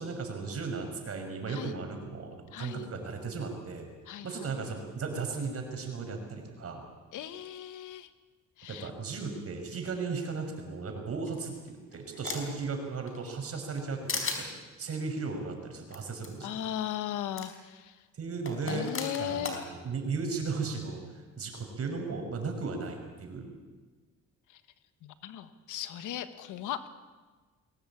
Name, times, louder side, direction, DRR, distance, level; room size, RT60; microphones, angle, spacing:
voice 1, 0.0-3.9 4.2-6.8 8.7-14.5 14.8-16.6 18.1-18.9 19.2-21.0 21.4-23.5, right 4 dB, 50° right, 4 dB, 5.7 m, -36 dB
voice 2, 2.5-2.9 4.1-4.5 7.1-8.1 8.6-8.9 16.4-18.0 18.7-19.6 24.5-24.6 25.0-26.9, left 11 dB, 85° left, 12 dB, 1.5 m, -37 dB
sound 1, 11.3-12.6 13.1-13.8 14.1-14.4 15.9-16.0 16.2-16.3 17.4-17.5 18.5-19.6, left 4 dB, 45° left, 4.8 m, -36 dB
22.0 x 18.0 x 8.6 m, 1.3 s
cardioid pair, 90°, 30 cm